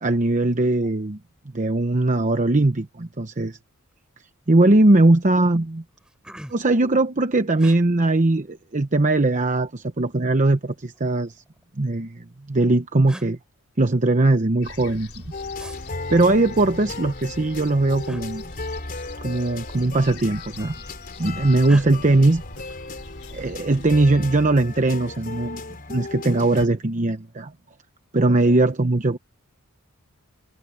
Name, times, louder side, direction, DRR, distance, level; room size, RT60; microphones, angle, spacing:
voice 1, 0.0-1.2 1.5-3.6 4.5-5.8 6.5-11.4 11.8-13.4 13.8-15.2 16.1-18.4 19.2-20.7 21.2-22.4 23.3-25.6 25.9-27.5 28.1-29.2, right 2 dB, 35° right, 1.0 m, -20 dB
sound 1, 3.9-4.1 4.5-4.9 5.5-5.6 5.9-6.8 7.6-7.8 9.0-9.7 10.8-11.7 12.6-12.7 13.1-13.3 15.6-15.8 18.0-18.3 19.6-19.9 20.2-20.8 21.6-21.9, equal, 5° right, 7.2 m, -42 dB
sound 2, 14.6-24.0, left 2 dB, 70° left, 5.4 m, -42 dB
sound 3, 15.3-26.7, left 3 dB, 40° left, 4.4 m, -36 dB
head